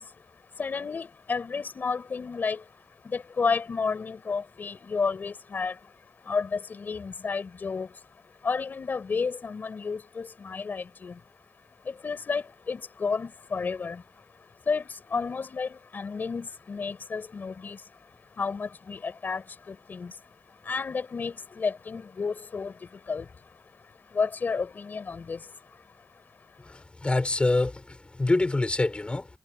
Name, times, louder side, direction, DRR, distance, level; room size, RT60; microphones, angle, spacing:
voice 1, 0.0-11.2 11.8-26.8, left 5 dB, 85° left, 5.1 m, -32 dB
voice 2, 26.7-29.3, left 2 dB, 35° left, 5.3 m, -26 dB
wide cardioid pair, 70°, 3 cm